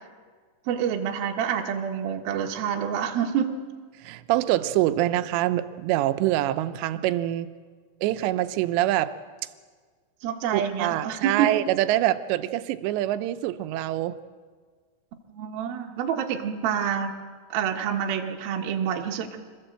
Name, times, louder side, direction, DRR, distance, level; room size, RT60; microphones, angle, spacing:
voice 1, 0.7-3.6 10.2-11.5 15.3-17.1 17.5-19.4, right 8 dB, 65° right, 2 dB, 2.9 m, -27 dB
voice 2, 4.0-7.5 8.0-9.1 10.5-14.2, right 14 dB, 80° right, 11 dB, 3.0 m, -25 dB
26.0 x 15.5 x 7.8 m, 1.6 s
omnidirectional pair, 5.1 m